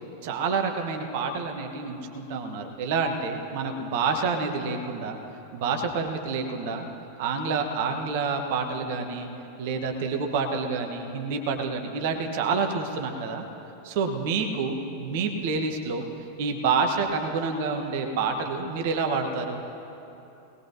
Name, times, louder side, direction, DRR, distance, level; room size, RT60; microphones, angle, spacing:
voice 1, 0.2-5.2 5.5-6.9 7.2-9.3 9.6-13.4 13.8-16.1 16.4-19.6, right 4 dB, 50° right, 4 dB, 1.2 m, -28 dB
19.5 x 19.5 x 2.8 m, 2.9 s
figure-of-eight pair, 90°, 0 cm